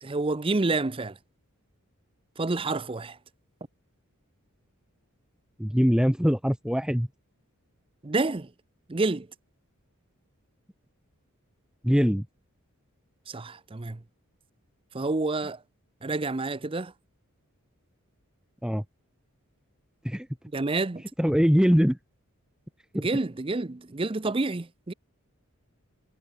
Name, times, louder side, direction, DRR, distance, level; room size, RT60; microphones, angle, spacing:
voice 1, 0.0-1.2 2.4-3.2 8.0-8.5 8.9-9.3 13.3-14.0 14.9-15.6 16.0-16.9 20.5-21.1 22.9-24.9, right 3 dB, 25° right, 0.6 m, -28 dB
voice 2, 5.6-7.1 11.8-12.2 18.6-18.8 20.0-20.3 21.2-22.0 22.9-23.1, equal, 5° right, 1.0 m, -22 dB
head